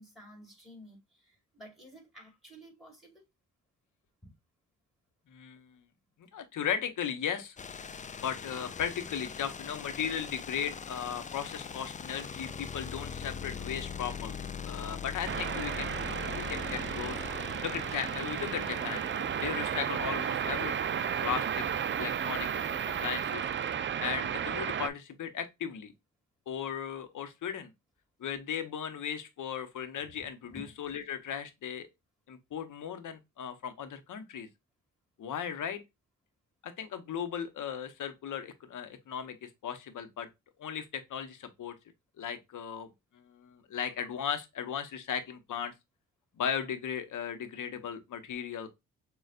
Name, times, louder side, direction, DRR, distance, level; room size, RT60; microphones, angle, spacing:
voice 1, 0.0-3.2 4.2-4.3 30.5-30.8, equal, ahead, 2.4 m, -52 dB
voice 2, 5.3-5.8 6.3-7.6 8.2-17.2 17.6-19.0 19.4-20.9 21.2-21.6 22.0-22.5 23.0-23.4 24.0-25.9 26.5-27.7 28.2-31.9 32.3-34.5 35.2-35.8 36.6-40.3 40.6-41.7 42.2-42.9 43.1-45.7 46.4-48.7, left 8 dB, 70° left, 0.9 m, -36 dB
sound 1, 7.6-23.7, left 6 dB, 25° left, 0.3 m, -42 dB
sound 2, 15.3-24.9, right 8 dB, 40° right, 0.4 m, -33 dB
6.4 x 2.4 x 2.4 m
cardioid pair, 80°, 32 cm